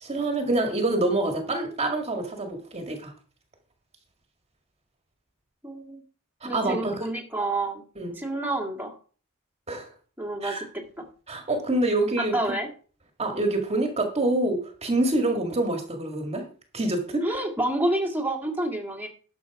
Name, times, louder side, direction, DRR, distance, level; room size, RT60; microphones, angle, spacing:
voice 1, 0.0-3.1 6.4-7.1 8.0-8.1 9.7-9.9 10.4-10.6 11.3-12.3 13.2-16.4 16.7-17.3, right 2 dB, 30° right, 4 dB, 1.8 m, -26 dB
voice 2, 5.6-6.0 6.4-7.8 8.2-8.9 10.2-10.6 11.0-11.1 12.2-12.7 17.2-19.1, right 1 dB, 10° right, 1 dB, 2.0 m, -28 dB
12.0 x 7.0 x 4.7 m, 0.40 s
head